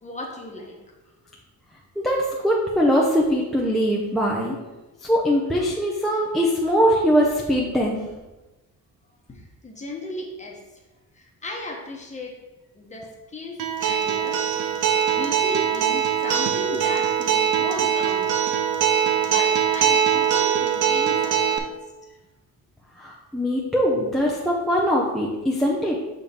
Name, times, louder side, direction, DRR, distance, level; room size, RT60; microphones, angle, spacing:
voice 1, 0.0-0.8 9.3-10.6 11.1-12.3 12.7-14.4 14.9-18.4 19.2-21.7, left 1 dB, 20° left, -1 dB, 1.0 m, -35 dB
voice 2, 2.0-4.6 5.0-8.0 23.0-26.0, equal, ahead, -3 dB, 0.5 m, -22 dB
Acoustic guitar, 13.6-21.6, right 8 dB, 55° right, 0.6 m, -22 dB
6.9 x 3.6 x 4.2 m, 1.1 s
wide cardioid pair, 175°, 36 cm